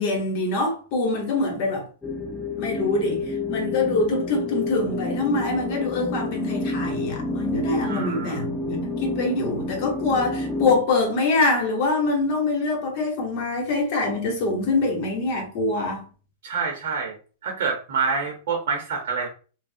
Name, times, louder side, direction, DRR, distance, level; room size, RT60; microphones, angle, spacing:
voice 1, 0.0-1.8 2.6-16.0, left 3 dB, 55° left, 1.0 m, -24 dB
sound 1, 2.0-10.8, left 2 dB, 10° left, 0.6 m, -29 dB
voice 2, 7.9-8.4 16.4-17.2 17.4-19.3, right 5 dB, 70° right, 0.7 m, -27 dB
3.3 x 2.0 x 2.5 m
hypercardioid pair, 125°, 0 cm